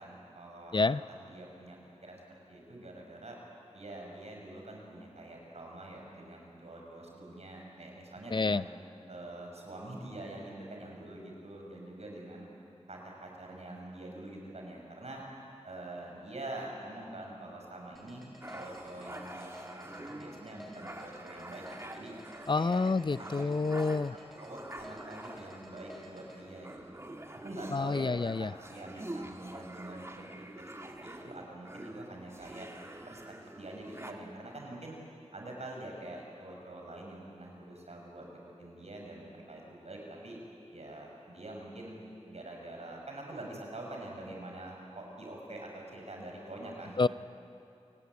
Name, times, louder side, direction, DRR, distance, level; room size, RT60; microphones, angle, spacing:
voice 1, 0.0-3.4 3.7-8.7 9.1-12.5 12.9-15.2 15.6-19.5 19.8-22.1 22.5-22.8 23.2-23.5 24.1-27.0 27.3-32.7 33.1-33.2 33.6-35.0 35.3-40.4 40.7-42.0 42.3-47.0, right 1 dB, 75° right, 0 dB, 6.1 m, -45 dB
voice 2, 8.3-8.6 22.5-24.1 27.7-28.5 47.0-47.1, left 3 dB, 45° left, 16 dB, 0.5 m, -28 dB
sound 1, 17.9-26.4, left 1 dB, ahead, 6.3 m, -52 dB
sound 2, 18.4-34.1, right 1 dB, 25° right, 1.9 m, -46 dB
28.0 x 18.5 x 9.5 m, 2.7 s
wide cardioid pair, 60°, 11 cm